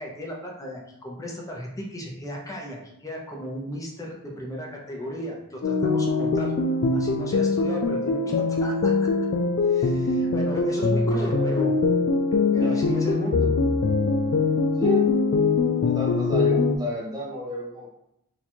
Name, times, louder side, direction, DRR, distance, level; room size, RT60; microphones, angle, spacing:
voice 1, 0.0-6.5 6.9-8.9 9.6-11.7 12.5-13.6, equal, 15° left, -2 dB, 0.7 m, -35 dB
sound 1, 5.6-16.8, left 3 dB, 50° left, 0.3 m, -22 dB
voice 2, 12.6-13.0 14.8-15.1 15.8-17.9, equal, 20° right, -3 dB, 0.7 m, -32 dB
2.9 x 2.4 x 4.2 m, 0.83 s
head